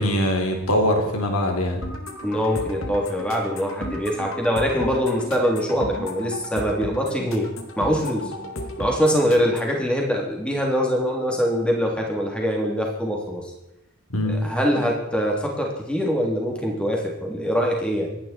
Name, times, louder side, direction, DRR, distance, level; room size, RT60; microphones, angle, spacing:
voice 1, 0.0-1.8 14.1-14.4, equal, 80° left, 3 dB, 3.7 m, -22 dB
sound 1, 1.8-9.8, left 1 dB, 65° left, 2.2 m, -35 dB
voice 2, 2.2-7.5 7.8-8.3 8.8-13.5 14.2-18.2, equal, 5° left, -1 dB, 3.4 m, -23 dB
26.0 x 11.0 x 4.5 m, 0.87 s
head